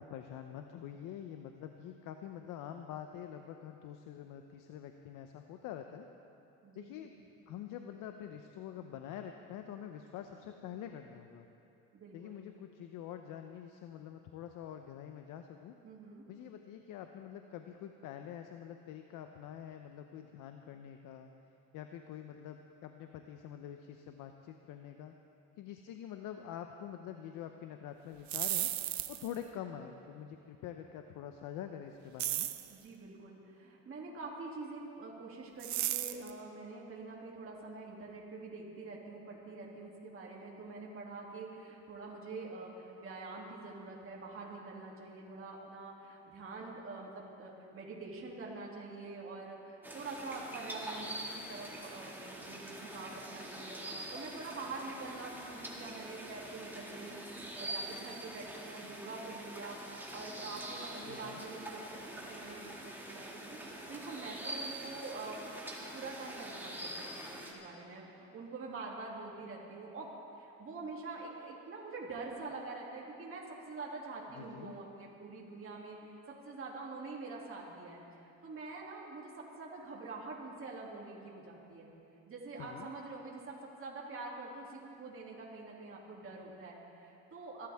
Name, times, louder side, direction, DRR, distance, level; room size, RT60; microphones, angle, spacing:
voice 1, 0.0-6.1 6.7-7.2 7.5-11.5 12.1-15.7 16.3-21.3 21.7-25.2 25.6-28.7 29.1-32.5 61.0-61.5 74.4-74.8 82.6-82.9, left 9 dB, 75° left, 6 dB, 0.8 m, -46 dB
voice 2, 6.6-7.0 11.9-12.5 15.8-16.2 32.7-51.1 51.3-65.5 65.8-81.9 82.3-87.7, right 3 dB, 40° right, -3 dB, 2.8 m, -46 dB
sound 1, 28.1-29.4 32.2-32.7 35.6-36.3, right 13 dB, 60° right, 0.8 m, -34 dB
sound 2, 49.8-67.5, right 1 dB, 5° right, 2.3 m, -45 dB
23.5 x 12.5 x 3.6 m, 2.8 s
cardioid pair, 95°, 32 cm